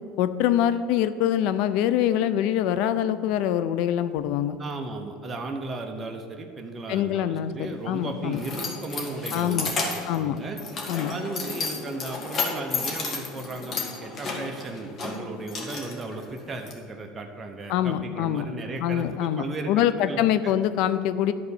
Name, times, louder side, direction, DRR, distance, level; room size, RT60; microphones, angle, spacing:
voice 1, 0.2-4.6 6.9-8.4 9.3-9.7 10.1-10.4 10.9-11.2 17.7-18.5 18.8-21.3, left 11 dB, 70° left, 13 dB, 0.5 m, -24 dB
voice 2, 4.6-10.6 11.1-20.5, right 2 dB, 25° right, 3 dB, 0.8 m, -36 dB
Keys jangling, 7.6-16.7, left 4 dB, 40° left, 1.8 m, -33 dB
10.5 x 3.9 x 7.1 m, 2.5 s
supercardioid pair, 105°, 0 cm